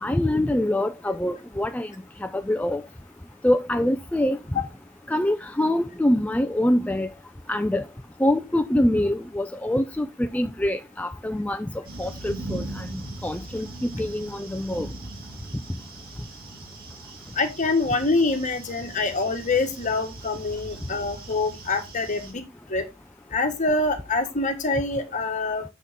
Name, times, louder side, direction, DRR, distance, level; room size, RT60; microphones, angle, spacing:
voice 1, 0.0-1.9 2.2-2.8 3.4-4.6 5.1-7.1 7.5-7.8 8.2-11.7 12.0-14.9, left 1 dB, 5° left, 0.4 m, -25 dB
sound 1, 11.8-22.3, right 2 dB, 50° right, 2.0 m, -40 dB
voice 2, 17.3-22.9 23.3-25.6, left 3 dB, 40° left, 1.5 m, -25 dB
6.8 x 6.3 x 3.6 m
head